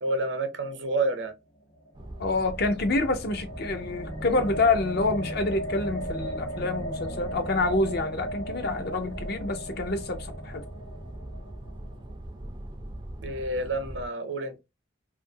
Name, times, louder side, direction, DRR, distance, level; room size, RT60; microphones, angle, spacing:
voice 1, 0.0-1.3 13.2-14.6, right 2 dB, 65° right, 0.7 m, -29 dB
sound 1, 1.8-11.9, right 1 dB, 85° left, 1.0 m, -37 dB
sound 2, 1.9-14.1, right 1 dB, 25° right, 0.4 m, -41 dB
voice 2, 2.2-10.6, left 3 dB, 55° left, 0.6 m, -27 dB
2.7 x 2.5 x 2.6 m
head